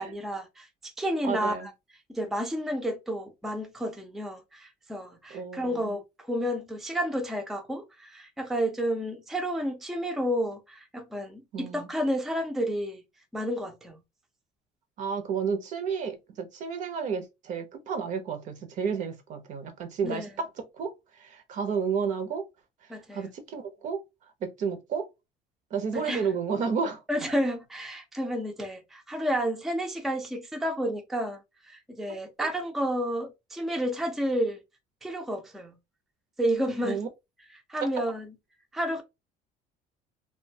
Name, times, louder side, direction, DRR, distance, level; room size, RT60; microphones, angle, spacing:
voice 1, 0.0-1.7 2.1-13.0 13.3-14.0 20.0-20.3 22.9-23.3 25.9-26.2 27.1-31.4 31.6-34.6 35.0-35.7 36.4-37.0 37.7-38.3 38.7-39.0, equal, ahead, 0.4 m, -31 dB
voice 2, 1.2-1.7 5.3-6.0 11.5-11.9 15.0-22.5 22.8-24.0 24.4-25.1 25.7-27.0 32.4-32.5 36.8-37.1 37.8-37.9, right 6 dB, 50° right, 0.6 m, -32 dB
2.7 x 2.2 x 2.6 m
cardioid pair, 125°, 16 cm